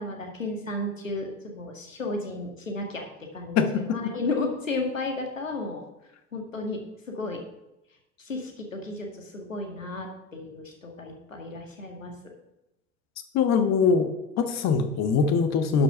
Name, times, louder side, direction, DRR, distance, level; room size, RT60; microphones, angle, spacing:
voice 1, 0.0-5.8 6.3-6.8 7.1-7.4 8.2-12.3, left 2 dB, 85° left, 2 dB, 1.9 m, -33 dB
voice 2, 3.5-4.0 13.3-14.1 14.4-15.8, left 5 dB, 45° left, 8 dB, 1.4 m, -22 dB
12.0 x 5.8 x 5.6 m, 0.91 s
figure-of-eight pair, 65°, 38 cm